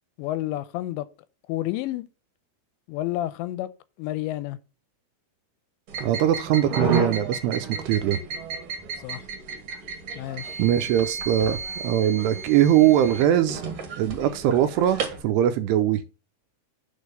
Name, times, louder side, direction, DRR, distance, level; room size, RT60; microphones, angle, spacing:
voice 1, 0.2-1.1 1.5-2.0 2.9-3.7 4.0-4.6 9.0-9.3 10.2-10.6, left 15 dB, 90° left, 2.9 m, -30 dB
sound 1, 5.9-15.2, right 5 dB, 55° right, 1.8 m, -32 dB
voice 2, 6.0-8.2 10.6-11.6 11.8-13.6 14.0-16.0, right 11 dB, 80° right, 2.5 m, -21 dB
8.6 x 4.0 x 6.7 m
omnidirectional pair, 5.1 m